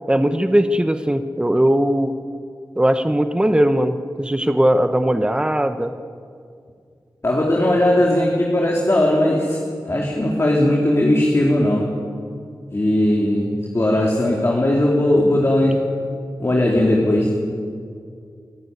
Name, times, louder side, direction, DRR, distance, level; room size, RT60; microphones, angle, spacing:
voice 1, 0.1-2.1 2.8-5.9, right 1 dB, 10° right, 9 dB, 1.0 m, -19 dB
voice 2, 7.2-9.6 9.8-11.9 12.7-15.8 16.4-17.4, left 1 dB, 35° left, -2 dB, 3.2 m, -18 dB
25.0 x 14.5 x 9.6 m, 2.3 s
wide cardioid pair, 70°, 8 cm